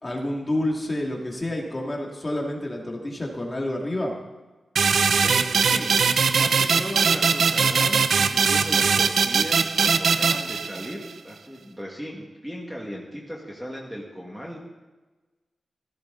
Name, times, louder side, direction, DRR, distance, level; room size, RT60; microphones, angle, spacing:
voice 1, 0.0-4.1, left 1 dB, 20° left, 0 dB, 2.6 m, -28 dB
sound 1, 4.8-11.1, right 5 dB, 75° right, 0.7 m, -21 dB
voice 2, 5.2-5.9 6.3-14.6, equal, 5° right, -2 dB, 2.1 m, -37 dB
17.0 x 14.5 x 4.0 m, 1.2 s
wide cardioid pair, 140°, 0 cm